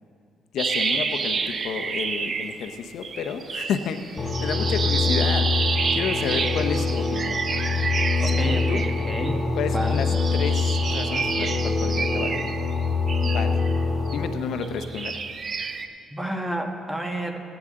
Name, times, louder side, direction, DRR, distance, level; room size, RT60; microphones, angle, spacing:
voice 1, 0.5-7.4 7.7-7.9 8.2-8.8 9.6-12.6 13.2-13.6 14.1-15.2, left 7 dB, 75° left, 7 dB, 0.6 m, -31 dB
sound 1, 0.6-2.8 3.0-9.3 9.7-14.2 14.6-15.9, right 5 dB, 45° right, 0.6 m, -29 dB
sound 2, 4.2-14.3, left 4 dB, 35° left, 2.0 m, -25 dB
voice 2, 8.2-10.0 16.1-17.4, right 1 dB, 15° right, 3 dB, 1.3 m, -30 dB
17.5 x 8.7 x 3.6 m, 2.5 s
cardioid pair, 90°, 0 cm